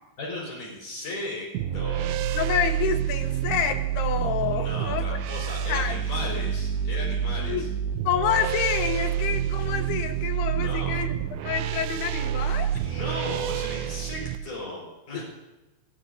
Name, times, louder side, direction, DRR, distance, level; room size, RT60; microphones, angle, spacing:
voice 1, 0.2-1.5 1.7-2.3 4.5-7.7 10.5-10.9 12.7-15.2, left 2 dB, 50° left, -2 dB, 6.6 m, -36 dB
sound 1, 1.5-14.4, right 10 dB, 85° right, 2.8 m, -28 dB
voice 2, 2.3-5.1 5.7-6.0 6.2-6.4 7.5-7.7 8.0-11.1 11.4-12.7, left 8 dB, 75° left, 5 dB, 3.3 m, -28 dB
28.0 x 18.5 x 2.7 m, 1.1 s
omnidirectional pair, 4.8 m